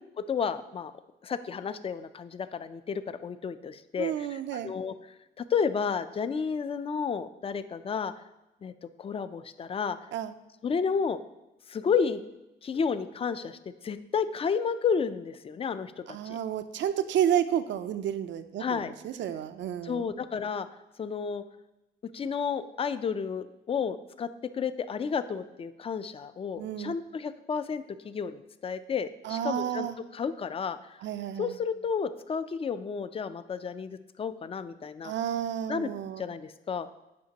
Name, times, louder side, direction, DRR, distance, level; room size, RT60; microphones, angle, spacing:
voice 1, 0.3-0.9 1.2-4.9 5.4-8.1 8.6-8.7 9.0-10.0 10.6-11.2 11.7-12.2 12.6-13.6 13.8-16.4 18.6-18.9 19.8-20.7 21.0-21.4 22.1-24.3 24.5-29.9 30.1-30.8 31.4-35.1 35.7-35.9 36.2-36.9, left 6 dB, 30° left, 13 dB, 0.4 m, -31 dB
voice 2, 4.0-4.7 10.1-10.3 16.1-20.1 26.6-27.0 29.2-30.0 31.0-31.6 35.0-36.2, right 10 dB, 65° right, 11 dB, 0.5 m, -31 dB
8.6 x 5.1 x 2.8 m, 0.95 s
cardioid pair, 90°, 20 cm